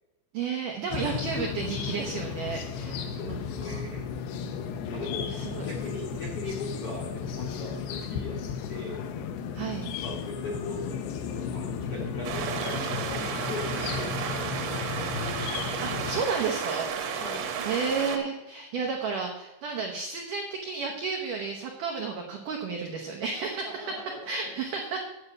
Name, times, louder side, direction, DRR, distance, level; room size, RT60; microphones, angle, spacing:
voice 1, 0.3-3.8 4.9-5.0 5.3-5.7 9.5-9.9 15.8-17.2 17.7-23.9 24.3-25.0, right 5 dB, 90° right, 1 dB, 1.8 m, -32 dB
sound 1, 0.9-16.2, left 6 dB, 75° left, 2.6 m, -34 dB
voice 2, 2.7-4.0 4.9-8.4 8.7-9.0 9.8-14.7 17.1-17.5 23.6-24.5, left 2 dB, 60° left, -1 dB, 1.5 m, -39 dB
sound 2, 12.2-18.2, right 7 dB, 70° right, 2.2 m, -33 dB
9.7 x 7.8 x 6.1 m, 1.1 s
omnidirectional pair, 5.3 m